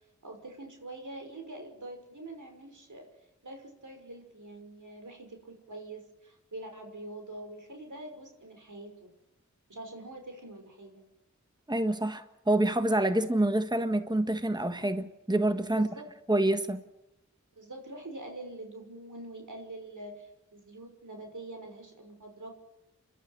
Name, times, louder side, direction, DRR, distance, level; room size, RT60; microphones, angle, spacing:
voice 1, 0.2-3.1 3.4-9.1 9.7-11.0 15.8-16.1 17.5-22.5, right 2 dB, 85° right, 4 dB, 5.9 m, -45 dB
voice 2, 11.7-15.9 16.3-16.8, right 1 dB, 15° right, 8 dB, 1.6 m, -27 dB
29.5 x 12.5 x 9.6 m, 0.90 s
wide cardioid pair, 55°, 30 cm